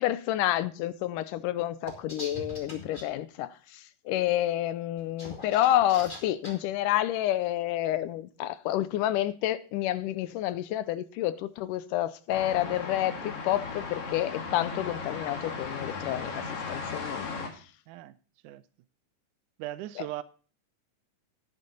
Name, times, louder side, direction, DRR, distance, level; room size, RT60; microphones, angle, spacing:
voice 1, 0.0-17.5, left 13 dB, 80° left, 2.2 m, -29 dB
sound 1, 1.9-3.0 5.0-6.5, left 1 dB, 20° left, 1.8 m, -42 dB
sound 2, 12.3-17.5, left 4 dB, 50° left, 2.4 m, -36 dB
voice 2, 19.6-20.2, right 15 dB, 80° right, 2.0 m, -38 dB
10.5 x 9.8 x 3.9 m
omnidirectional pair, 3.7 m